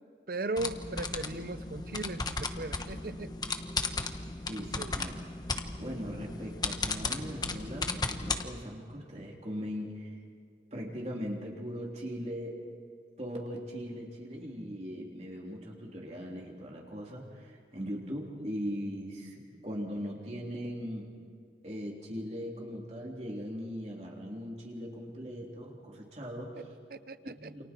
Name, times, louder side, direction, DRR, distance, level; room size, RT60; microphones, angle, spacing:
voice 1, 0.3-3.3 4.8-4.9 26.9-27.5, right 2 dB, 55° right, 14 dB, 0.8 m, -37 dB
sound 1, 0.6-8.4, left 3 dB, 25° left, 1.2 m, -35 dB
voice 2, 4.5-5.3 5.8-10.2 10.7-12.6 13.2-21.1 21.6-26.7 27.3-27.6, equal, 35° right, -2 dB, 3.5 m, -39 dB
29.0 x 28.5 x 4.6 m, 2.2 s
head